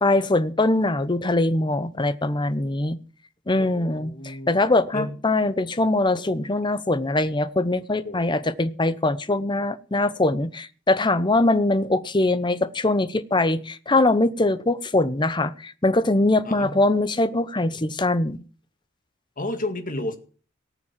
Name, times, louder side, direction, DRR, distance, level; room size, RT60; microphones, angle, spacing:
voice 1, 0.0-3.0 3.5-18.4, left 2 dB, 25° left, 13 dB, 0.8 m, -22 dB
voice 2, 3.6-4.6 4.9-5.2 8.0-8.2 16.4-16.8 18.0-18.1 19.4-20.2, left 1 dB, 45° left, 7 dB, 2.0 m, -32 dB
18.5 x 7.0 x 7.4 m, 0.40 s
head